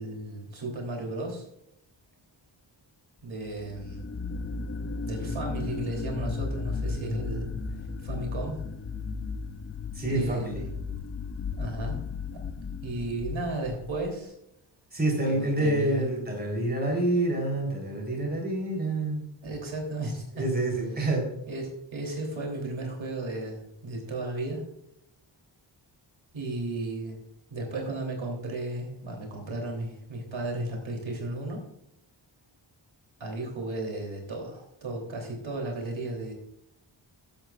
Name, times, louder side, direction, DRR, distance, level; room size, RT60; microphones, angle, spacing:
voice 1, 0.0-1.5 3.2-4.1 5.0-7.5 8.0-8.6 10.1-10.7 11.5-12.0 12.3-12.4 12.8-14.3 15.2-16.1 19.4-20.4 21.5-24.6 26.3-27.2 27.5-31.6 33.2-36.3, right 2 dB, 80° right, 1 dB, 3.3 m, -34 dB
sound 1, 3.5-14.1, left 4 dB, 30° left, 0.6 m, -35 dB
voice 2, 9.9-10.6 14.9-19.2 20.3-21.3, right 1 dB, 20° right, 0 dB, 3.7 m, -27 dB
14.5 x 10.5 x 2.4 m, 0.80 s
wide cardioid pair, 165°, 46 cm